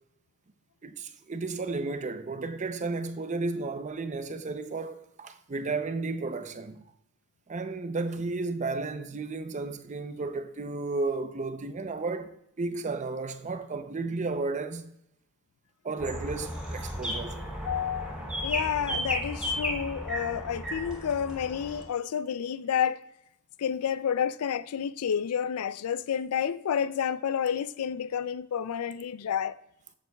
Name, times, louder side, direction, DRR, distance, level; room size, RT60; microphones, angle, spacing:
voice 1, 0.8-6.8 7.5-15.0 15.8-17.4, right 3 dB, 35° right, 0.6 m, -33 dB
sound 1, 16.0-21.8, equal, 5° right, 2.8 m, -34 dB
voice 2, 17.6-23.0 23.6-29.6, left 8 dB, 85° left, 0.4 m, -30 dB
14.0 x 7.5 x 2.3 m
head